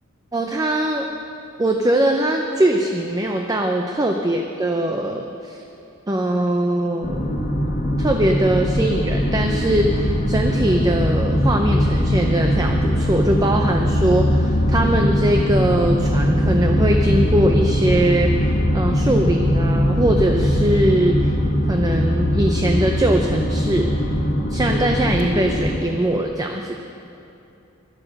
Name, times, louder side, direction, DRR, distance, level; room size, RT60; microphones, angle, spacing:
voice 1, 0.3-1.1 1.6-5.6 6.1-7.3 8.0-21.4 21.7-23.9 24.5-26.7, right 1 dB, 20° right, 3 dB, 0.5 m, -21 dB
sound 1, 7.0-25.8, equal, 45° left, 1.7 m, -20 dB
12.5 x 9.9 x 6.5 m, 2.7 s
head